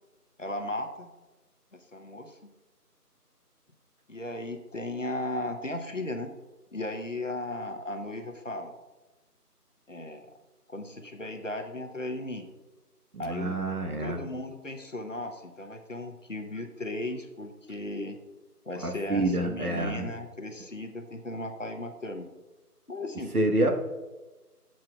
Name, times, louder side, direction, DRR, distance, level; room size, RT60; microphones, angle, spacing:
voice 1, 0.4-1.1 1.7-2.4 4.1-6.3 6.7-8.7 9.9-10.3 10.7-12.5 13.2-13.6 14.0-18.2 18.7-22.3 22.9-23.3, left 1 dB, 50° left, 5 dB, 0.9 m, -36 dB
voice 2, 13.1-14.2 18.8-20.0 23.3-23.7, right 1 dB, 65° right, 3 dB, 1.3 m, -27 dB
14.5 x 7.5 x 2.3 m, 1.1 s
figure-of-eight pair, 175°, 48 cm